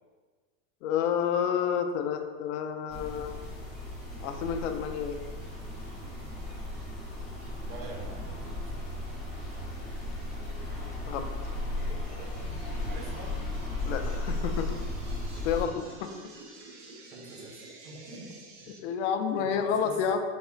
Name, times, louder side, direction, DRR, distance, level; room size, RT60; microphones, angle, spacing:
voice 1, 0.8-3.4 4.2-5.2 11.1-11.3 13.9-14.8 15.4-16.1 18.8-20.2, left 7 dB, 55° left, 6 dB, 0.5 m, -29 dB
sound 1, 2.9-15.7, left 2 dB, ahead, 0.9 m, -35 dB
voice 2, 7.6-8.5 11.8-12.6 12.9-13.3 17.1-18.8 19.4-20.0, right 2 dB, 85° right, -1 dB, 1.2 m, -46 dB
sound 2, 11.1-18.8, right 3 dB, 35° right, 0.4 m, -51 dB
5.3 x 3.8 x 2.4 m, 1.4 s
supercardioid pair, 165°, 46 cm